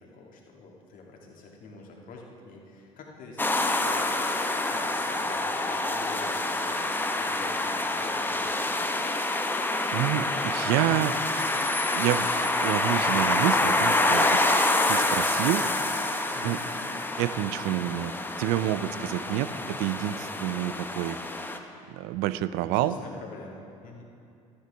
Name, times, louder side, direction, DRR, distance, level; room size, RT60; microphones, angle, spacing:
voice 1, 0.0-8.4 16.3-16.7 22.7-24.0, left 3 dB, 50° left, -1 dB, 1.9 m, -46 dB
sound 1, 3.4-21.6, left 2 dB, 10° left, 0.8 m, -27 dB
voice 2, 9.9-11.2 11.9-14.4 14.9-15.6 16.4-16.6 17.2-18.1 18.4-21.2 21.9-23.0, right 13 dB, 65° right, 14 dB, 0.4 m, -28 dB
12.5 x 10.0 x 3.4 m, 2.6 s
hypercardioid pair, 60°, 17 cm